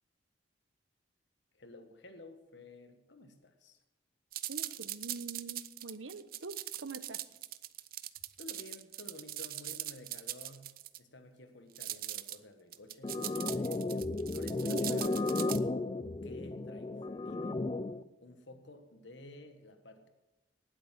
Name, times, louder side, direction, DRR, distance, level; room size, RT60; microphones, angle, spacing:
voice 1, 1.5-3.8 8.4-15.4 16.2-17.7 18.2-20.1, left 2 dB, 65° left, 7 dB, 1.4 m, -53 dB
sound 1, 4.3-11.0 11.8-12.4 12.7-15.6, right 14 dB, 50° right, 0.5 m, -41 dB
voice 2, 4.5-7.2 14.7-15.1, right 3 dB, 80° right, 12 dB, 0.9 m, -44 dB
sound 2, 13.0-18.0, left 2 dB, 25° left, 0.4 m, -34 dB
18.0 x 8.2 x 5.9 m, 1.0 s
head